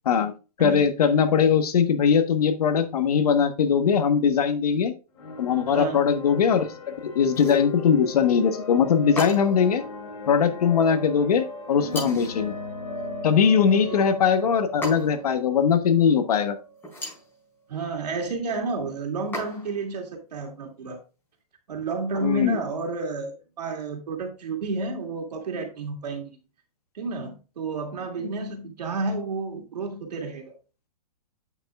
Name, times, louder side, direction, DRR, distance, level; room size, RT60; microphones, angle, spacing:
voice 1, 0.6-4.9 5.4-9.8 10.3-12.6 13.2-16.5 22.2-22.6, left 7 dB, 70° left, 1.3 m, -21 dB
sound 1, 5.2-16.8, left 2 dB, 50° left, 2.6 m, -37 dB
voice 2, 5.7-6.0 13.7-14.0 17.7-21.0 21.7-26.4 26.9-30.5, right 3 dB, 85° right, 2.5 m, -31 dB
sound 2, 7.3-7.7 9.2-9.7 11.9-12.4 14.8-15.3 16.8-17.3 19.3-19.9, left 1 dB, 10° left, 4.5 m, -35 dB
8.7 x 7.0 x 2.4 m
hypercardioid pair, 165°, 20 cm